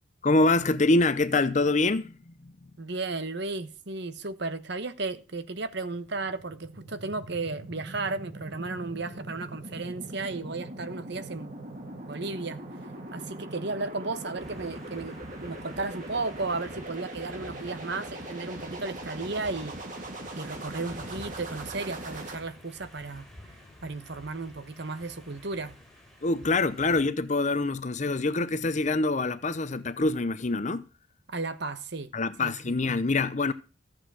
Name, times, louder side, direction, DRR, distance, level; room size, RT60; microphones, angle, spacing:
voice 1, 0.2-2.5 26.2-30.9 32.1-33.5, left 2 dB, 35° left, 0.6 m, -25 dB
voice 2, 2.8-11.5 12.1-12.6 13.1-19.8 20.4-23.2 23.8-25.8 31.3-32.1 32.4-32.7, right 3 dB, 55° right, 1.2 m, -34 dB
sound 1, 5.9-22.3, right 1 dB, 40° right, 2.9 m, -41 dB
sound 2, 14.4-27.0, left 1 dB, ahead, 6.6 m, -50 dB
14.5 x 7.7 x 6.3 m
head